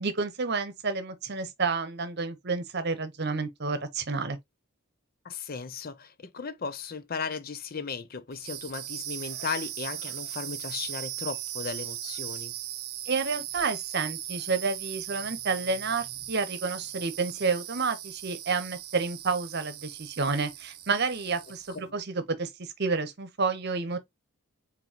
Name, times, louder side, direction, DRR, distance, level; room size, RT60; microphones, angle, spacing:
voice 1, 0.0-4.4 13.1-24.0, right 4 dB, 50° right, 0.9 m, -30 dB
voice 2, 5.2-12.5 21.7-21.9, left 5 dB, 40° left, 0.5 m, -36 dB
sound 1, 8.3-21.9, right 12 dB, 85° right, 0.8 m, -38 dB
4.6 x 4.0 x 2.8 m
head